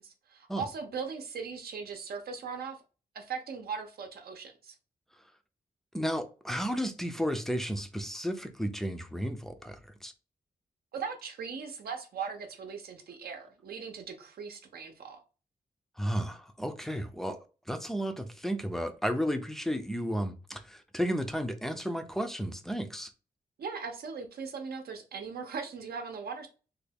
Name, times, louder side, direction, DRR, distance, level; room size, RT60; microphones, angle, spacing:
voice 1, 0.0-2.8 3.1-4.8 10.9-15.2 23.6-26.5, right 5 dB, 85° right, 0.6 m, -39 dB
voice 2, 5.9-10.1 16.0-17.4 17.7-23.1, equal, ahead, 0.4 m, -33 dB
3.3 x 2.2 x 3.3 m
wide cardioid pair, 155°, 16 cm